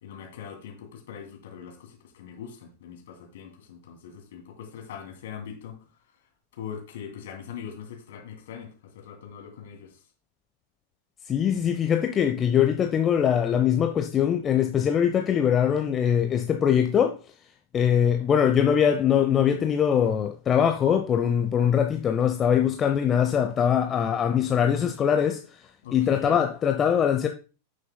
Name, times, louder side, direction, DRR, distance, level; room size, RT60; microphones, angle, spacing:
voice 1, 0.0-5.8 6.5-9.9 25.8-26.4, left 7 dB, 55° left, 2.7 m, -41 dB
voice 2, 11.3-17.2 17.7-25.4 25.9-27.3, left 8 dB, 25° left, 0.7 m, -22 dB
15.0 x 6.4 x 2.2 m
figure-of-eight pair, 90°, 0 cm